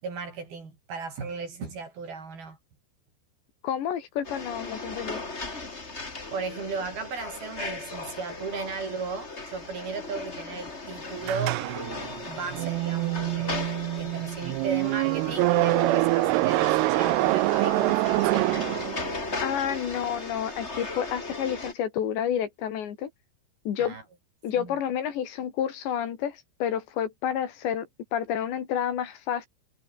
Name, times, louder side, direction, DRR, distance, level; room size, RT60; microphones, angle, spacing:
voice 1, 0.0-2.6 6.3-11.6 12.3-13.7 14.0-18.7 23.8-24.0 24.5-24.8, right 4 dB, 55° right, 8.0 m, -36 dB
voice 2, 3.6-5.2 19.4-23.1 23.7-24.0 24.4-29.5, left 9 dB, 75° left, 4.9 m, -30 dB
sound 1, 4.2-21.7, left 3 dB, 20° left, 2.5 m, -37 dB
sound 2, 11.3-19.3, right 23 dB, 85° right, 2.3 m, -25 dB
omnidirectional pair, 5.1 m